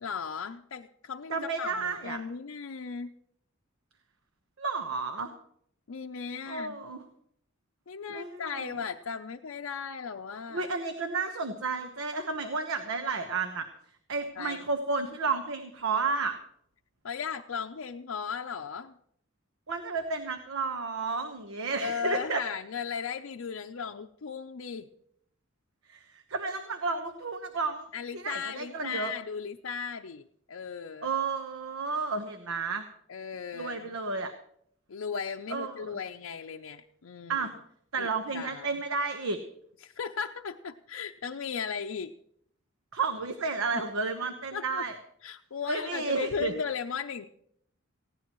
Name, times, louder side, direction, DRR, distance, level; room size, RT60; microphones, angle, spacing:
voice 1, 0.0-3.1 5.9-6.8 7.9-10.7 14.4-14.6 17.0-18.9 21.8-24.9 27.9-31.1 33.1-34.0 34.9-37.5 38.0-38.7 39.8-42.1 44.5-44.8 45.2-47.3, left 6 dB, 80° left, 3 dB, 0.6 m, -36 dB
voice 2, 1.3-2.2 4.6-5.3 6.5-7.0 8.1-8.7 10.5-13.7 14.1-16.4 19.7-22.4 25.9-27.9 28.1-29.1 31.0-32.8 33.5-34.3 35.5-36.0 37.3-37.5 37.9-39.4 42.9-45.0 45.7-46.5, right 4 dB, 90° right, 7 dB, 1.1 m, -32 dB
18.5 x 16.0 x 3.1 m, 0.68 s
head